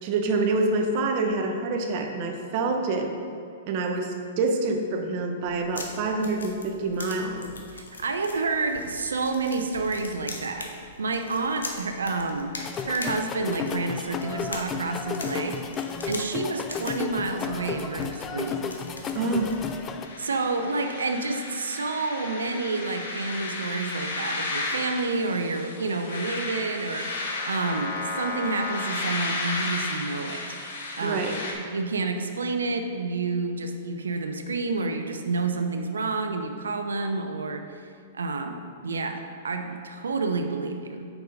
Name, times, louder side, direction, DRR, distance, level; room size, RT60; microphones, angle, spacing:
voice 1, 0.0-3.2 3.7-7.5 19.1-19.6 31.0-31.4, right 3 dB, 50° right, 4 dB, 0.8 m, -26 dB
sound 1, 5.4-19.9, left 3 dB, 90° left, 0.8 m, -42 dB
voice 2, 7.7-10.7 11.0-12.5 12.8-18.7 20.2-27.1 27.5-30.6 31.0-31.2 31.6-37.8 38.1-41.1, right 3 dB, 85° right, 6 dB, 0.6 m, -29 dB
sound 2, 12.6-20.1, left 6 dB, 25° left, 0.4 m, -33 dB
sound 3, 20.0-31.5, left 2 dB, 70° left, 1.1 m, -33 dB
5.5 x 4.6 x 5.2 m, 2.5 s
hypercardioid pair, 120°, 0 cm